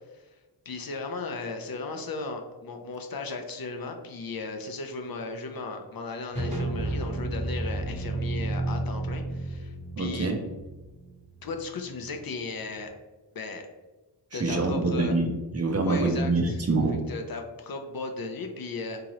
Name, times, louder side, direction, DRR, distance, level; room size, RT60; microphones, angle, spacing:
voice 1, 0.7-10.3 11.4-12.9 13.3-13.7 14.3-15.1 15.8-16.6 17.1-19.0, left 3 dB, 55° left, 4 dB, 0.5 m, -36 dB
sound 1, 6.3-12.0, right 2 dB, 15° right, 0.9 m, -32 dB
voice 2, 10.0-10.4 14.3-17.0, right 3 dB, 35° right, 3 dB, 0.5 m, -25 dB
3.7 x 2.9 x 3.0 m, 1.1 s
wide cardioid pair, 100°, 44 cm